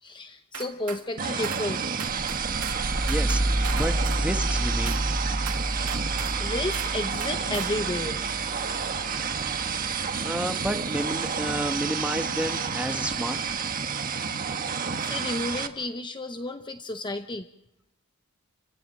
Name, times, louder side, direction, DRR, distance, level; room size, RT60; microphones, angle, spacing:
voice 1, 0.0-1.9 5.8-6.0 6.4-8.2 13.6-13.7 14.7-17.5, left 2 dB, 20° left, 7 dB, 0.8 m, -32 dB
sound 1, 0.5-1.0 1.4-1.7 2.0-2.8 3.1-4.2 4.9-5.1 5.5-6.4 6.7-7.0 7.2-7.8, right 8 dB, 90° right, 2.2 m, -37 dB
sound 2, 1.2-15.7, right 6 dB, 40° right, 1.4 m, -30 dB
sound 3, 2.0-11.3, right 1 dB, 60° right, 2.1 m, -30 dB
voice 2, 3.1-3.4 3.7-5.0 10.2-13.4, right 1 dB, 5° right, 5 dB, 1.5 m, -30 dB
29.0 x 16.5 x 7.5 m, 0.90 s
head